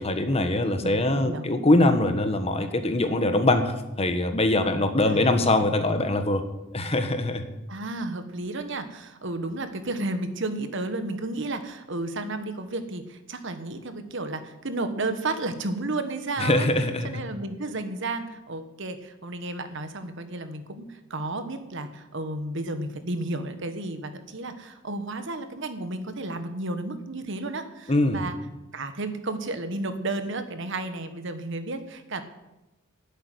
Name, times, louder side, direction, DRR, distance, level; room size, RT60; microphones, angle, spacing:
voice 1, 0.0-6.4 6.7-7.4 16.4-17.1 27.9-28.2, left 2 dB, 30° left, 7 dB, 1.2 m, -23 dB
voice 2, 0.8-1.4 5.1-5.5 5.9-6.0 7.7-16.7 17.0-28.3 28.7-32.2, right 2 dB, 65° right, 9 dB, 1.3 m, -32 dB
11.0 x 8.2 x 9.4 m, 0.99 s
head